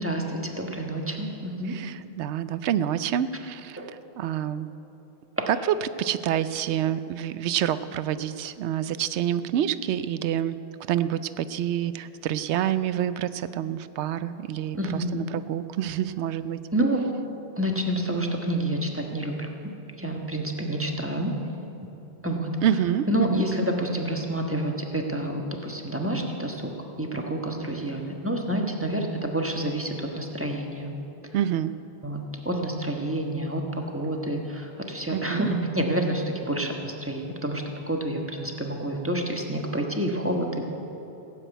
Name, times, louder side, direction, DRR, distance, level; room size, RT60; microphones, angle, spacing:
voice 1, 0.0-1.7 3.8-3.9 5.4-5.5 14.7-15.1 16.7-17.0 17.6-19.5 20.0-21.3 22.2-22.5 23.1-26.7 27.0-30.9 32.0-40.6, right 1 dB, 10° right, 1 dB, 1.3 m, -28 dB
voice 2, 1.7-3.8 4.2-4.7 6.0-10.6 10.9-16.6 22.6-23.4 31.3-31.7 35.1-35.5, right 10 dB, 90° right, 14 dB, 0.9 m, -27 dB
16.5 x 7.7 x 9.1 m, 3.0 s
omnidirectional pair, 1.1 m